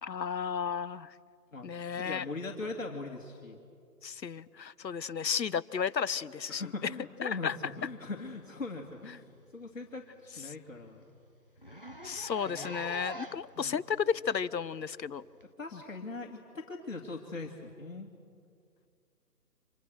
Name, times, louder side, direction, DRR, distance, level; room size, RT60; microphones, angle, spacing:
voice 1, 0.0-1.1 1.6-2.2 4.0-6.6 7.2-7.6 12.0-15.2, left 7 dB, 80° left, 17 dB, 1.0 m, -33 dB
voice 2, 1.5-3.6 6.5-9.2 9.5-11.1 12.4-12.8 13.6-13.8 15.6-18.1, left 3 dB, 50° left, 0 dB, 2.5 m, -41 dB
Zipper (clothing), 8.9-9.1 9.5-9.6 9.9-10.0 10.4-10.5 10.7-10.9 11.6-13.5 14.3-14.4 15.4-15.5, right 1 dB, 35° left, 0.6 m, -44 dB
30.0 x 26.5 x 6.4 m, 2.3 s
figure-of-eight pair, 175°, 50 cm